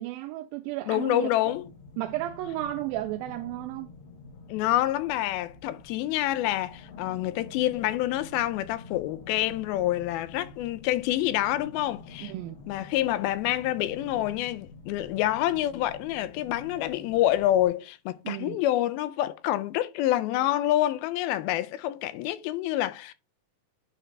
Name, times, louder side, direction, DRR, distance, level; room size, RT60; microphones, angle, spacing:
voice 1, 0.0-1.3 2.0-3.9 12.2-12.6 18.3-18.6, right 15 dB, 80° right, 2.2 m, -33 dB
voice 2, 0.9-1.7 4.5-12.3 12.7-23.1, left 14 dB, 85° left, 2.4 m, -27 dB
sound 1, 1.5-17.7, left 4 dB, 65° left, 2.2 m, -47 dB
9.2 x 4.0 x 4.1 m
omnidirectional pair, 4.3 m